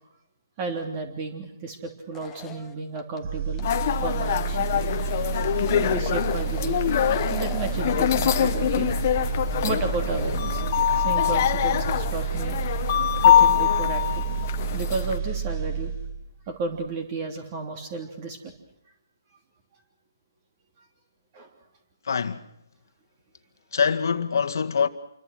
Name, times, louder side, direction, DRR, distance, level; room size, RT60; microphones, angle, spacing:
voice 1, 0.6-3.7 4.0-4.7 5.7-6.8 7.3-8.9 9.6-10.6 10.9-12.6 13.2-14.3 14.7-15.9 16.5-18.5 21.3-21.5, right 3 dB, 25° right, 3.2 m, -33 dB
sound 1, 2.1-3.2 3.6-3.7 5.5-6.6 7.0-7.9, left 10 dB, 15° left, 1.3 m, -39 dB
sound 2, 3.2-16.4 16.7-16.9, right 7 dB, 45° right, 6.5 m, -30 dB
sound 3, 3.6-15.2, left 10 dB, 40° left, 1.2 m, -24 dB
voice 2, 22.0-22.5 23.7-24.9, left 6 dB, 65° left, 1.9 m, -24 dB
27.5 x 23.0 x 6.4 m
hypercardioid pair, 150°, 2 cm